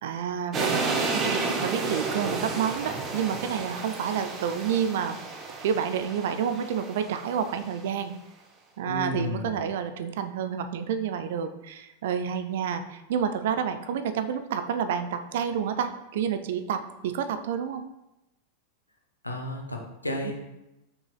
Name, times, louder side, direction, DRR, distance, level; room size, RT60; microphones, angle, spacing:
voice 1, 0.0-5.2 5.6-8.1 8.8-17.8 20.2-20.3, right 8 dB, 55° right, 10 dB, 0.3 m, -29 dB
sound 1, 0.5-7.6, right 3 dB, 25° right, 0.7 m, -31 dB
voice 2, 8.8-9.6 19.2-20.3, left 1 dB, 85° left, 2 dB, 0.6 m, -32 dB
5.7 x 3.9 x 2.3 m, 0.94 s
figure-of-eight pair, 90°, 0 cm